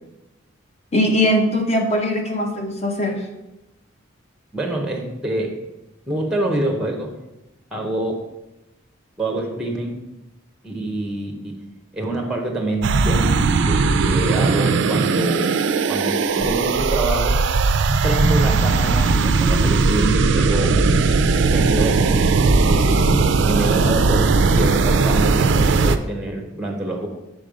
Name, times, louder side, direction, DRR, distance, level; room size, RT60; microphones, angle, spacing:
voice 1, 0.9-3.3, left 1 dB, 30° left, 2 dB, 0.9 m, -20 dB
voice 2, 4.5-5.6 6.1-7.1 7.7-8.1 9.2-10.0 10.6-11.5 11.9-15.6 15.9-17.4 18.0-20.8 21.5-27.1, right 1 dB, 5° right, 2 dB, 0.8 m, -26 dB
sound 1, 12.8-26.0, right 4 dB, 55° right, 0.3 m, -18 dB
5.3 x 5.3 x 5.0 m, 0.96 s
head